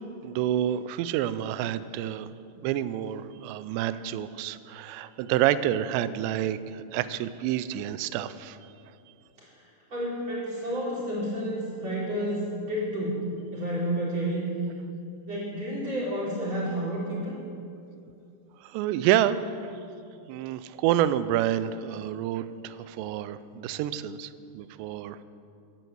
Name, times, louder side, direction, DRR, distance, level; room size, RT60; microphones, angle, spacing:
voice 1, 0.2-2.3 2.6-8.6 18.6-19.8 20.3-25.2, right 11 dB, 85° right, 14 dB, 2.7 m, -28 dB
voice 2, 9.9-13.2 13.5-14.5 15.3-17.4, equal, 30° right, -7 dB, 4.2 m, -30 dB
12.5 x 9.2 x 7.9 m, 2.6 s
omnidirectional pair, 5.1 m